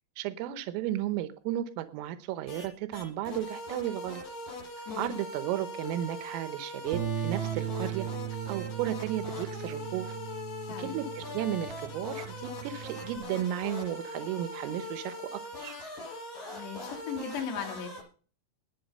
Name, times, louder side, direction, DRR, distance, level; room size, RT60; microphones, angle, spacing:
voice 1, 0.2-4.2 5.0-8.1 8.5-10.2 10.8-15.8, right 12 dB, 85° right, 10 dB, 3.6 m, -34 dB
sound 1, 2.5-2.7 2.9-18.0, left 2 dB, 45° left, 8.7 m, -41 dB
voice 2, 4.9-5.2 10.7-11.0 16.5-17.9, left 7 dB, 60° left, 4 dB, 4.5 m, -37 dB
Bass guitar, 6.9-13.2, right 12 dB, 60° right, 2.9 m, -38 dB
21.0 x 7.3 x 5.4 m, 0.41 s
omnidirectional pair, 5.8 m